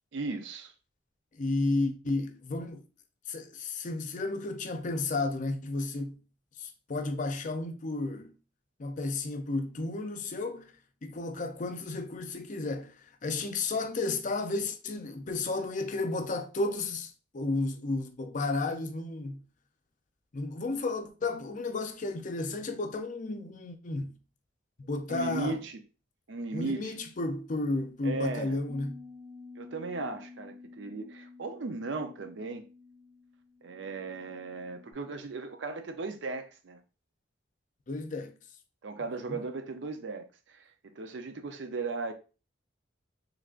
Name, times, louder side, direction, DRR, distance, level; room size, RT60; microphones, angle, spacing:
voice 1, 0.1-0.7 25.1-25.8 26.3-26.9 28.0-28.6 29.6-32.7 33.6-36.8 38.8-40.6 41.0-42.1, right 3 dB, 70° right, 0.5 m, -36 dB
voice 2, 1.3-2.8 3.3-6.2 6.6-8.3 8.8-10.8 11.0-13.0 13.2-19.4 20.3-24.1 24.8-25.6 26.5-29.0 37.9-38.3 39.3-39.4, left 2 dB, 40° left, 0.5 m, -33 dB
Bass guitar, 28.7-34.9, left 4 dB, 25° right, 0.9 m, -51 dB
3.6 x 3.2 x 2.4 m
head